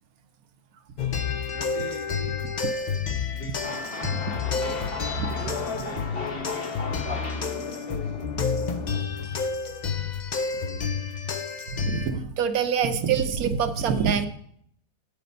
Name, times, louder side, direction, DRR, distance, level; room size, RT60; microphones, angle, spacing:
sound 1, 1.0-12.1, left 5 dB, 55° left, 0.4 m, -30 dB
voice 1, 1.5-2.4 3.3-4.1 4.4-5.0 5.3-8.2, left 3 dB, 80° left, -2 dB, 1.9 m, -42 dB
sound 2, 3.5-9.0, left 4 dB, 40° left, 1.2 m, -36 dB
voice 2, 5.2-5.5 9.2-9.5 11.7-14.3, right 7 dB, 65° right, 9 dB, 1.2 m, -26 dB
8.6 x 6.8 x 5.3 m, 0.66 s
omnidirectional pair, 1.7 m